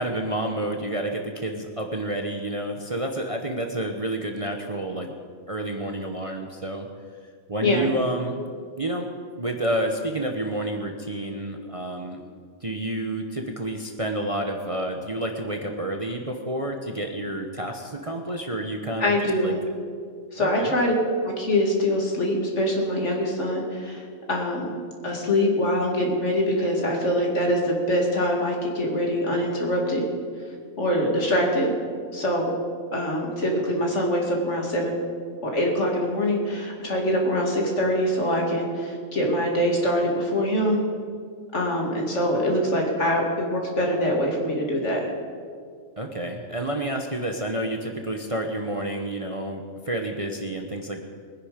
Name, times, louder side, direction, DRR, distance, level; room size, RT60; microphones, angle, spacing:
voice 1, 0.0-5.1 5.5-6.9 7.5-8.4 8.8-9.1 9.4-12.2 12.6-19.5 20.4-20.7 46.0-51.0, right 1 dB, 30° right, 3 dB, 0.9 m, -29 dB
voice 2, 19.0-19.6 20.3-20.9 21.2-24.7 25.0-30.0 30.8-31.7 32.1-32.5 32.9-35.0 35.4-40.8 41.5-45.1, equal, 60° left, 0 dB, 2.8 m, -24 dB
22.0 x 10.0 x 5.1 m, 2.1 s
omnidirectional pair, 1.4 m